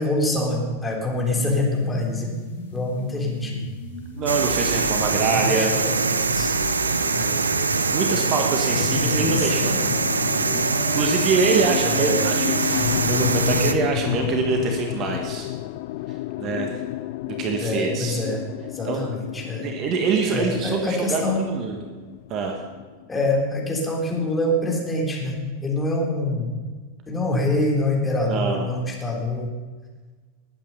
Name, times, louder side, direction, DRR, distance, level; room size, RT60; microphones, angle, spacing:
voice 1, 0.0-2.3 2.7-3.6 5.0-6.5 7.1-7.4 8.1-8.2 9.0-9.5 11.8-12.3 17.6-18.4 18.7-19.7 20.3-21.4 23.1-26.5 27.1-29.5, left 1 dB, 10° left, -2 dB, 3.7 m, -25 dB
sound 1, 1.2-11.2, left 1 dB, 75° left, 3.5 m, -37 dB
voice 2, 4.1-5.7 7.9-9.9 10.9-15.5 16.4-16.7 17.3-18.2 18.8-19.0 19.6-21.2 21.5-21.8 22.3-22.6 28.2-28.7, right 5 dB, 35° right, 3 dB, 1.6 m, -25 dB
sound 2, 4.3-13.7, right 4 dB, 75° right, 0.7 m, -23 dB
sound 3, 8.7-23.4, left 15 dB, 50° left, 0.4 m, -31 dB
20.5 x 8.9 x 5.5 m, 1.4 s
figure-of-eight pair, 90°, 0 cm